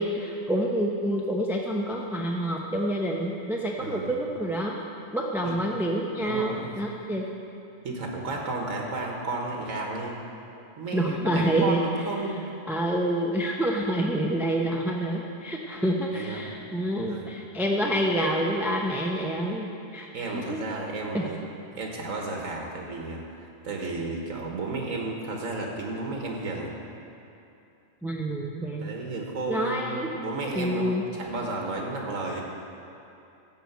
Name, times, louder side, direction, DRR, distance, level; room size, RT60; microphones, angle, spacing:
voice 1, 0.0-4.8 5.1-7.3 10.9-11.8 12.7-20.6 21.1-21.3 28.0-28.9 29.5-30.1 30.5-31.1, right 1 dB, ahead, -1 dB, 0.5 m, -27 dB
voice 2, 3.8-4.1 5.4-5.6 6.2-6.8 7.8-10.3 10.8-12.5 16.1-16.5 17.0-17.4 17.7-17.9 20.1-21.4 21.7-26.7 28.8-32.4, right 2 dB, 85° right, 0 dB, 1.7 m, -33 dB
13.5 x 5.0 x 8.0 m, 2.8 s
omnidirectional pair, 1.3 m